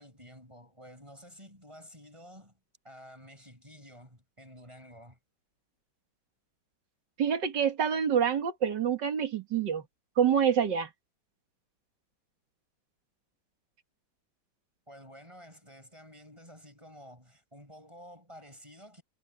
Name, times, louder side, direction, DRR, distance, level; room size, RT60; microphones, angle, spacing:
voice 1, 0.0-2.6 2.8-5.2 14.9-19.0, equal, 15° right, 7.8 m, -51 dB
voice 2, 7.2-9.8 10.2-10.9, right 8 dB, 60° right, 2.4 m, -27 dB
omnidirectional pair, 2.2 m